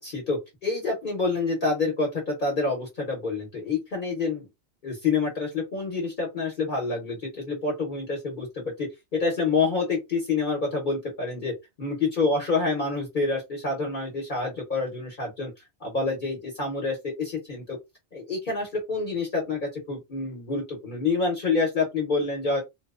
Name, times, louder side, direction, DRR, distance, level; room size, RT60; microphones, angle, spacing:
voice 1, 0.0-4.5 4.8-8.9 9.2-15.5 15.8-17.8 18.1-22.6, left 3 dB, 50° left, -1 dB, 0.9 m, -27 dB
2.8 x 2.0 x 2.3 m, 0.21 s
omnidirectional pair, 1.2 m